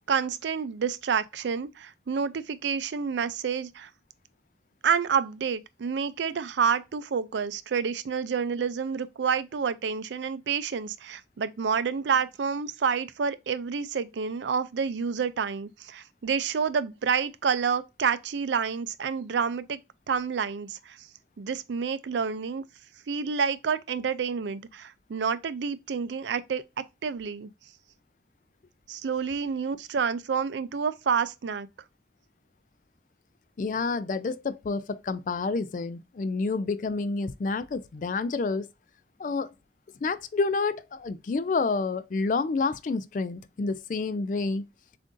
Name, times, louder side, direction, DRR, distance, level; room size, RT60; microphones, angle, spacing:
voice 1, 0.1-3.9 4.8-19.8 20.1-21.0 21.4-22.6 23.1-26.6 27.0-27.5 28.9-31.7, right 6 dB, 75° right, 0.4 m, -28 dB
voice 2, 33.6-38.7 39.2-39.5 40.0-44.6, left 4 dB, 45° left, 0.3 m, -29 dB
7.3 x 2.6 x 2.5 m
head